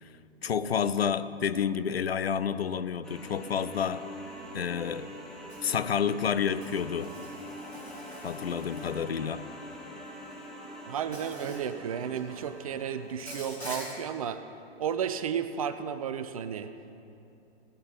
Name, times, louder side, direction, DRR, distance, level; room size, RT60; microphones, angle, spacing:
voice 1, 0.4-4.0 4.5-5.1 5.6-7.2 8.2-9.4, left 7 dB, 70° left, 14 dB, 0.5 m, -29 dB
sound 1, 3.0-13.8, equal, ahead, 0.9 m, -44 dB
Insect, 5.5-5.7 6.6-9.2 10.3-10.5 11.1-11.7 12.0-12.5 13.2-13.9, equal, 90° left, 2.6 m, -44 dB
voice 2, 10.9-14.4 14.8-16.7, right 8 dB, 35° right, 11 dB, 0.4 m, -33 dB
16.5 x 9.2 x 3.6 m, 2.7 s
figure-of-eight pair, 115°, 32 cm